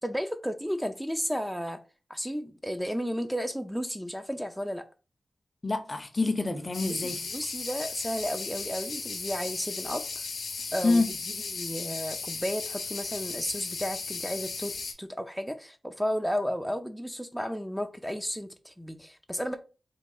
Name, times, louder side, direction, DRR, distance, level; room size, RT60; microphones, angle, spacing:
voice 1, 0.0-1.8 2.1-4.8 6.9-10.0 10.7-11.0 11.4-14.7 15.0-19.6, equal, ahead, 0.5 m, -33 dB
voice 2, 5.6-7.2 10.8-11.1, left 3 dB, 40° left, 0.7 m, -26 dB
sound 1, 6.7-14.9, left 4 dB, 90° left, 0.7 m, -36 dB
3.6 x 2.2 x 3.9 m
cardioid pair, 55°, 0 cm